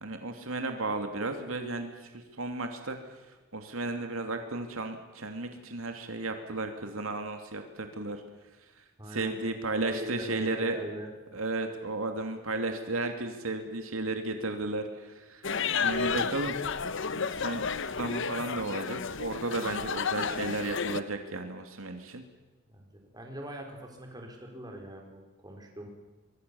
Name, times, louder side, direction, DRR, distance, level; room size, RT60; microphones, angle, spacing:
voice 1, 0.0-3.0 3.5-8.2 8.8-10.8 11.3-15.5 15.8-16.6 17.2-17.7 18.0-22.2, right 2 dB, 80° right, 5 dB, 2.8 m, -34 dB
voice 2, 9.0-9.3 9.8-11.1 22.7-25.9, right 1 dB, 20° right, 2 dB, 4.7 m, -42 dB
sound 1, 15.4-21.0, left 6 dB, 60° left, 1.0 m, -32 dB
25.5 x 23.0 x 7.1 m, 1.2 s
head